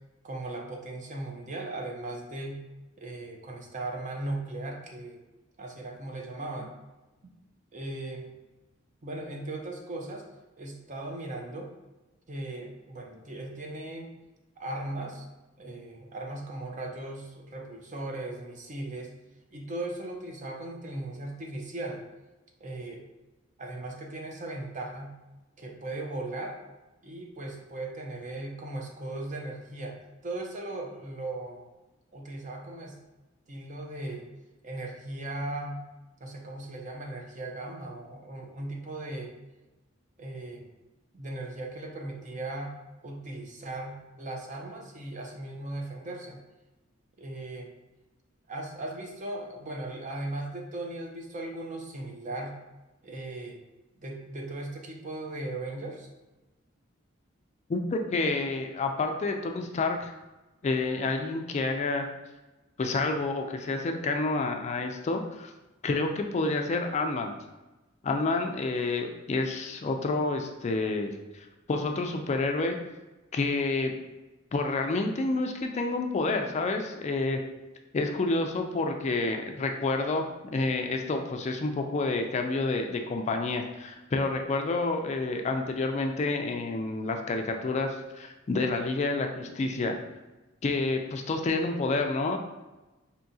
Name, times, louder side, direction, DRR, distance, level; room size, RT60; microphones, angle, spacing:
voice 1, 0.2-2.6 3.0-5.2 5.6-6.7 7.2-7.3 7.7-8.3 9.0-10.2 10.6-11.7 12.3-14.1 14.6-15.3 15.6-19.1 19.5-22.0 22.6-23.0 23.6-25.2 25.6-26.6 27.0-30.0 30.2-31.7 32.1-33.0 33.5-34.3 34.6-35.8 36.2-39.3 40.2-40.7 41.1-42.7 43.0-46.4 47.2-47.7 48.5-52.6 53.0-53.6 54.0-56.1, right 2 dB, 40° right, 1 dB, 0.6 m, -37 dB
voice 2, 57.7-60.1 60.6-62.1 62.8-65.5 65.8-67.3 68.0-72.8 73.3-74.0 74.5-77.4 77.9-90.0 90.6-92.4, left 3 dB, 35° left, 4 dB, 0.3 m, -29 dB
4.6 x 2.8 x 2.7 m, 1.1 s
head